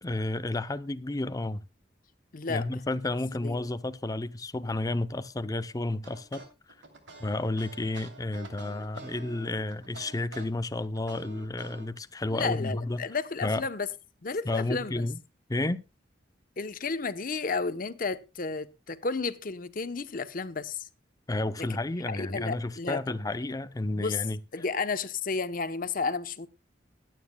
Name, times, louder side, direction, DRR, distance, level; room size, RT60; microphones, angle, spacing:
voice 1, 0.0-1.6 2.5-6.4 7.2-13.0 13.4-13.6 14.4-15.2 15.5-15.8 21.3-24.4, left 2 dB, 20° left, 0.6 m, -31 dB
voice 2, 2.3-2.7 3.4-3.6 12.3-13.9 14.2-15.1 16.6-20.9 21.6-21.7 22.1-23.0 23.9-24.2 24.5-26.5, left 4 dB, 50° left, 0.8 m, -32 dB
sound 1, 6.0-11.9, right 3 dB, 85° right, 3.0 m, -47 dB
22.5 x 9.3 x 2.2 m
head